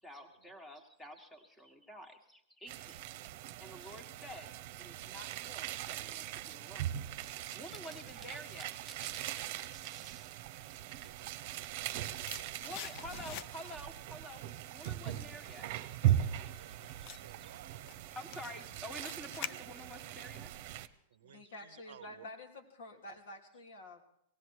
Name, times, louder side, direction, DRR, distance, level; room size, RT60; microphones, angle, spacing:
voice 1, 0.0-3.0 3.6-7.0 7.4-8.8 12.6-14.4 14.7-15.7 16.0-16.4 16.7-17.5 18.1-20.5 21.7-21.8, equal, 10° left, 5 dB, 1.7 m, -49 dB
sound 1, 2.7-20.9, right 12 dB, 50° right, 0.9 m, -39 dB
sound 2, 7.2-13.7, right 4 dB, 5° right, 0.9 m, -57 dB
voice 2, 11.0-13.0 16.6-18.0 21.1-22.2, right 10 dB, 85° right, 16 dB, 0.6 m, -58 dB
sound 3, 11.5-13.9 14.2-20.1 20.4-20.5, left 11 dB, 40° left, 0.5 m, -48 dB
voice 3, 21.2-24.0, left 1 dB, 80° left, 1 dB, 3.1 m, -49 dB
18.5 x 16.0 x 4.8 m, 0.73 s
supercardioid pair, 150°, 0 cm